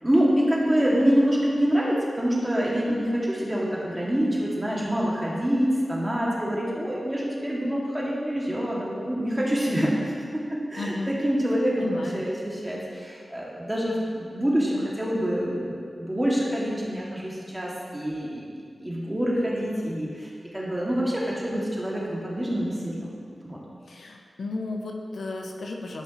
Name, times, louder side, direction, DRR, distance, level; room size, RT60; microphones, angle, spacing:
voice 1, 0.0-9.9 10.3-10.4 10.7-23.1 23.4-23.6, equal, 15° right, -5 dB, 2.2 m, -26 dB
voice 2, 10.8-11.1 11.8-12.2 23.9-26.0, left 2 dB, 80° left, 1 dB, 0.7 m, -33 dB
12.0 x 5.3 x 3.1 m, 2.1 s
cardioid pair, 50°, 0 cm